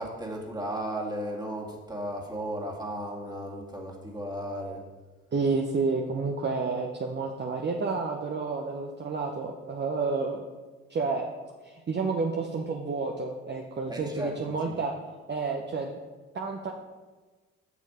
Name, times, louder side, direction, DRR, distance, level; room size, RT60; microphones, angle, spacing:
voice 1, 0.0-4.8 13.9-14.8, right 1 dB, 15° right, -1 dB, 1.9 m, -35 dB
voice 2, 5.3-10.4 10.9-11.3 11.6-14.9 15.3-15.9 16.3-16.7, right 4 dB, 35° right, 2 dB, 0.8 m, -30 dB
7.0 x 6.4 x 4.9 m, 1.3 s
supercardioid pair, 70°, 31 cm